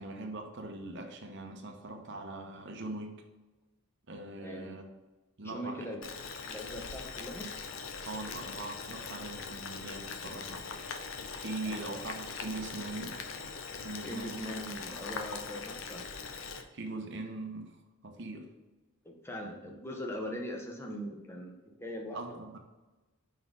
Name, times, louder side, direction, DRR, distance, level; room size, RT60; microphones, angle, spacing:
voice 1, 0.0-3.2 4.1-4.9 5.4-6.0 8.0-10.7 11.4-14.4 16.7-18.5 19.4-19.7 22.1-22.6, right 2 dB, 50° right, 4 dB, 0.8 m, -41 dB
voice 2, 4.2-4.8 5.4-6.0 6.5-7.5 11.6-11.9 14.0-16.0 19.0-22.4, equal, 10° left, 1 dB, 0.7 m, -41 dB
Boiling, 6.0-16.6, left 5 dB, 60° left, 0.6 m, -41 dB
5.2 x 4.2 x 4.7 m, 1.2 s
head